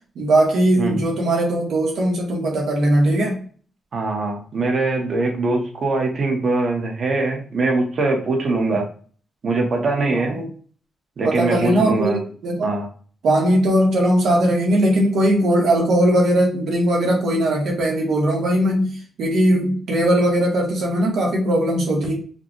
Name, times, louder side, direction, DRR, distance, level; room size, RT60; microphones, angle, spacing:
voice 1, 0.1-3.4 10.1-10.5 11.2-12.8 13.2-22.1, right 1 dB, 85° right, -2 dB, 1.5 m, -19 dB
voice 2, 3.9-8.9 9.4-10.4 11.2-12.2 12.6-12.9, right 3 dB, 55° right, 2 dB, 1.1 m, -22 dB
4.9 x 2.4 x 3.0 m, 0.43 s
cardioid pair, 120°, 0 cm